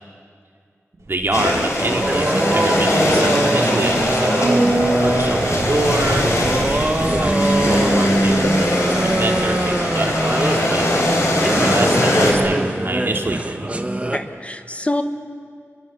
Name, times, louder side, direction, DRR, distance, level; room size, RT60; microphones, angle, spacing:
sound 1, 1.0-11.5 11.7-11.8, right 1 dB, 85° right, 4.8 m, -28 dB
voice 1, 1.1-4.6 5.0-10.9 11.6-13.7, right 2 dB, 50° right, 3 dB, 2.5 m, -26 dB
sound 2, 1.3-12.3, left 1 dB, 90° left, 4.0 m, -22 dB
sound 3, 1.8-14.2, right 1 dB, 25° right, 1.4 m, -21 dB
voice 2, 11.3-11.7 14.1-15.0, left 1 dB, 25° left, 8 dB, 1.2 m, -26 dB
28.0 x 24.0 x 6.2 m, 2.2 s
wide cardioid pair, 60°, 5 cm